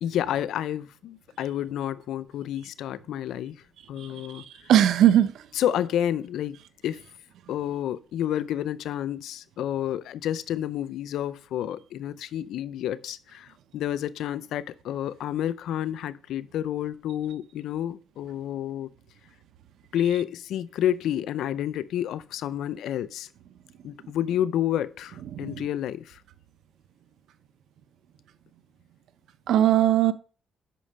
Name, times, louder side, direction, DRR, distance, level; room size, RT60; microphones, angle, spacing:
voice 1, 0.0-3.6 3.9-4.7 5.5-7.0 7.5-18.9 19.9-23.3 23.8-26.2, left 11 dB, 80° left, 0.5 m, -30 dB
voice 2, 4.7-5.3 25.4-25.7 29.5-30.1, right 11 dB, 75° right, 0.6 m, -19 dB
8.4 x 5.8 x 5.5 m
cardioid pair, 90°, 0 cm